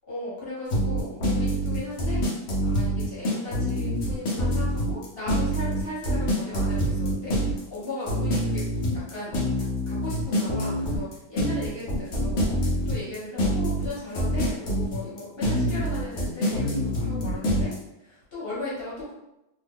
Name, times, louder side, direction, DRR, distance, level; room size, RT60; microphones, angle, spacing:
voice 1, 0.1-2.2 2.6-9.3 9.9-17.7 18.0-19.1, left 2 dB, 40° left, -8 dB, 1.4 m, -37 dB
sound 1, 0.7-17.7, equal, 55° left, 0.8 m, -25 dB
2.9 x 2.1 x 3.5 m, 0.91 s
omnidirectional pair, 1.7 m